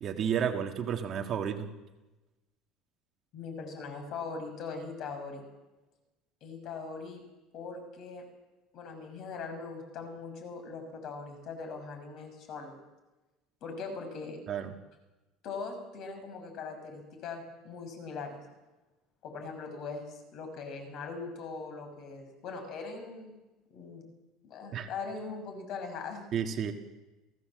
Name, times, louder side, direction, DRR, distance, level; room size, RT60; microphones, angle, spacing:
voice 1, 0.0-1.7 14.5-14.7 24.7-24.9 26.3-26.7, right 8 dB, 35° right, 4 dB, 1.6 m, -31 dB
voice 2, 3.3-5.5 6.4-7.2 7.5-8.2 8.7-12.8 13.6-14.4 15.4-18.4 19.2-23.3 23.7-24.1 24.4-26.2, left 4 dB, 45° left, 6 dB, 6.0 m, -41 dB
29.0 x 16.5 x 7.6 m, 1.1 s
cardioid pair, 165°, 0 cm